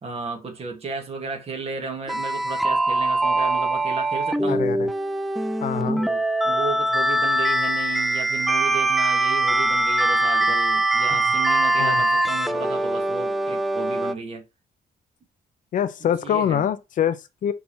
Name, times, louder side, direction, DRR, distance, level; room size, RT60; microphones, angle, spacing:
voice 1, 0.0-4.7 5.7-14.4 16.2-16.7, right 4 dB, 40° right, 1.9 m, -34 dB
sound 1, 2.1-14.1, right 1 dB, ahead, 0.4 m, -22 dB
voice 2, 4.5-4.9 5.6-6.0 11.1-11.2 11.8-12.0 15.7-17.5, left 9 dB, 55° left, 0.6 m, -25 dB
6.1 x 3.6 x 4.2 m
cardioid pair, 150°, 16 cm